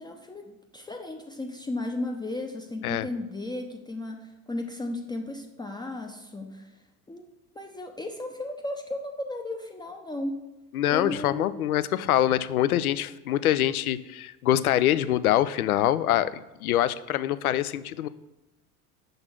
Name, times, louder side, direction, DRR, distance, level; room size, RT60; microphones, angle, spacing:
voice 1, 0.0-7.3 7.5-10.4 10.9-11.8, left 2 dB, 10° left, 2 dB, 0.6 m, -35 dB
voice 2, 10.7-18.1, left 12 dB, 75° left, 15 dB, 0.5 m, -24 dB
6.6 x 4.0 x 6.0 m, 1.0 s
figure-of-eight pair, 70°, 45 cm